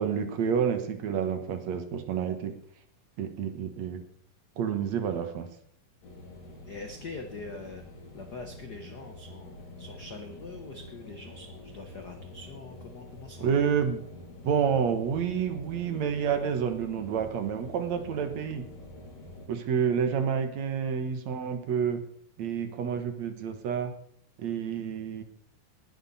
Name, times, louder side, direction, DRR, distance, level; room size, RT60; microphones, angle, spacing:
voice 1, 0.0-2.6 3.2-4.0 4.6-5.5 13.4-14.0 14.4-18.6 19.5-22.0 22.4-23.9 24.4-25.2, right 7 dB, 60° right, 8 dB, 2.4 m, -29 dB
sound 1, 6.0-19.5, left 1 dB, 50° left, 4.0 m, -47 dB
voice 2, 6.6-7.8 8.1-13.7, left 3 dB, 85° left, 5 dB, 0.8 m, -43 dB
19.5 x 11.5 x 4.2 m, 0.66 s
omnidirectional pair, 3.8 m